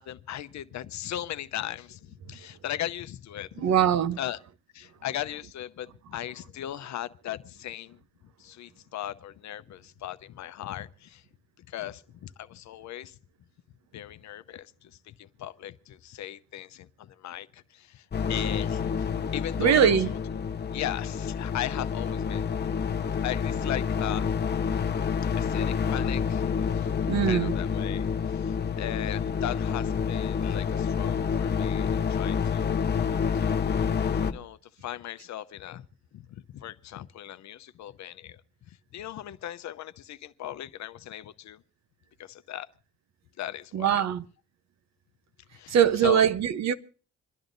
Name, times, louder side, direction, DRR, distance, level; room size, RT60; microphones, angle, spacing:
voice 1, 0.0-3.7 4.2-4.4 4.7-8.0 8.4-11.2 11.6-13.1 13.9-20.0 20.7-22.5 23.1-24.2 25.4-26.9 27.3-32.6 33.3-35.9 36.1-36.2 36.5-41.6 42.2-42.7 43.4-44.0 45.5-46.2, left 12 dB, 65° left, 0.7 m, -38 dB
voice 2, 3.6-4.2 19.6-20.1 27.1-27.6 43.7-44.2 45.7-46.7, right 8 dB, 60° right, 0.9 m, -22 dB
sound 1, 18.1-34.3, left 6 dB, 35° left, 0.9 m, -28 dB
27.0 x 11.0 x 2.6 m
cardioid pair, 90°, 30 cm